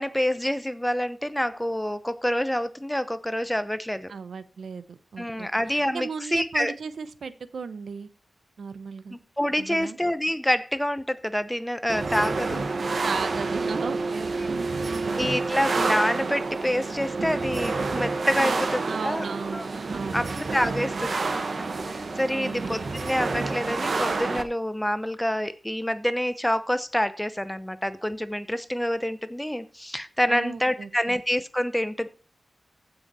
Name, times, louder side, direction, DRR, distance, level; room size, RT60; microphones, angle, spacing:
voice 1, 0.0-4.1 5.2-6.7 9.1-12.6 14.4-14.5 15.2-19.2 19.5-19.7 20.1-21.3 21.6-32.1, equal, 5° left, 13 dB, 0.8 m, -27 dB
voice 2, 4.1-8.1 8.6-9.2 9.6-10.0 13.0-15.3 18.4-18.5 18.8-21.0 22.3-22.9 30.3-31.2, right 5 dB, 80° right, 13 dB, 0.9 m, -36 dB
sound 1, 11.9-24.4, right 3 dB, 55° right, 1.2 m, -28 dB
15.5 x 6.0 x 4.2 m, 0.35 s
wide cardioid pair, 105°, 0 cm